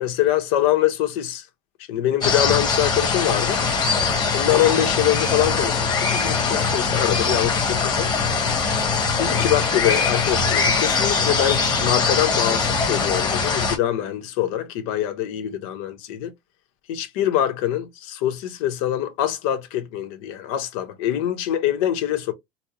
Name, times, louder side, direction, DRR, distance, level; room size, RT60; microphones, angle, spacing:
voice 1, 0.0-1.5 1.9-3.6 4.3-8.1 9.2-16.3 16.9-22.3, left 12 dB, 90° left, 0.9 m, -24 dB
sound 1, 2.2-13.8, left 5 dB, 25° left, 1.1 m, -22 dB
4.2 x 2.0 x 2.9 m
cardioid pair, 140°, 17 cm